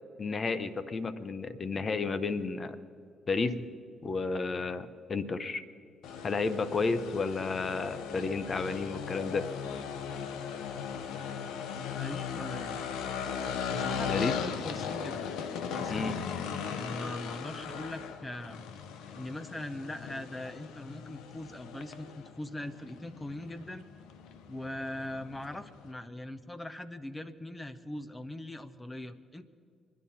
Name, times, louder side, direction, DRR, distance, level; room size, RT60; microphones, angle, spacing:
voice 1, 0.2-2.8 3.3-3.7 4.0-5.6 6.2-9.5 14.0-14.3 15.9-16.2, left 4 dB, 45° left, 12 dB, 1.0 m, -32 dB
sound 1, 6.0-25.9, left 7 dB, 80° left, 0.8 m, -38 dB
voice 2, 12.0-12.7 13.7-15.3 15.7-16.3 16.7-18.6 19.1-23.8 24.5-29.4, left 1 dB, 20° left, 11 dB, 1.1 m, -41 dB
25.0 x 10.5 x 4.3 m, 2.3 s
supercardioid pair, 55°, 0 cm